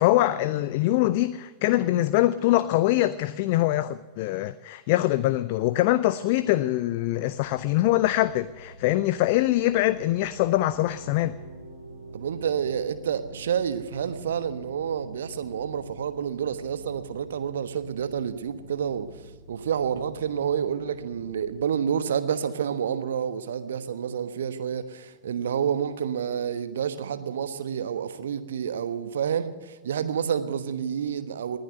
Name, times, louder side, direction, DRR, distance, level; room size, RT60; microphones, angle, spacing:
voice 1, 0.0-11.4, left 15 dB, 50° left, 0.6 m, -23 dB
sound 1, 7.2-21.5, right 1 dB, 85° right, 2.7 m, -47 dB
voice 2, 12.1-19.1 19.5-31.6, right 8 dB, 65° right, 1.2 m, -29 dB
19.5 x 11.0 x 6.6 m
figure-of-eight pair, 90°, 0 cm